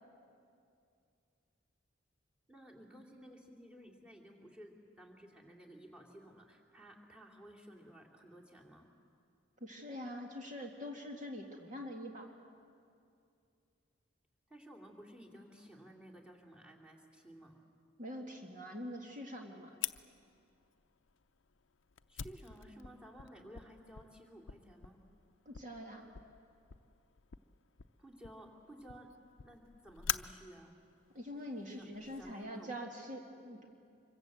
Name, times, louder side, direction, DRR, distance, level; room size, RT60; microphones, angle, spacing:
voice 1, 2.5-8.9 14.5-17.6 22.1-25.0 28.0-29.1 29.4-30.7 31.6-32.7, equal, 5° right, 1 dB, 2.7 m, -55 dB
voice 2, 9.6-12.3 18.0-19.8 25.5-26.1 31.1-33.7, equal, 40° right, 1 dB, 2.0 m, -44 dB
Fire, 19.8-32.3, left 11 dB, 80° left, 0.6 m, -46 dB
25.5 x 23.5 x 7.9 m, 2.5 s
head